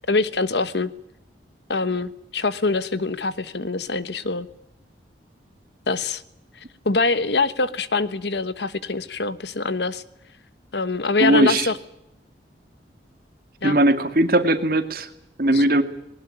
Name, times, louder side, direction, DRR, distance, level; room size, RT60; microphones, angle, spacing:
voice 1, 0.1-0.9 1.7-4.5 5.9-6.2 6.8-10.0 10.7-11.8 13.6-13.8 15.5-15.8, left 3 dB, 75° left, 14 dB, 1.3 m, -24 dB
voice 2, 11.2-11.7 13.6-15.1 15.4-15.8, right 1 dB, 55° right, 8 dB, 2.4 m, -19 dB
20.5 x 19.0 x 9.8 m, 0.81 s
head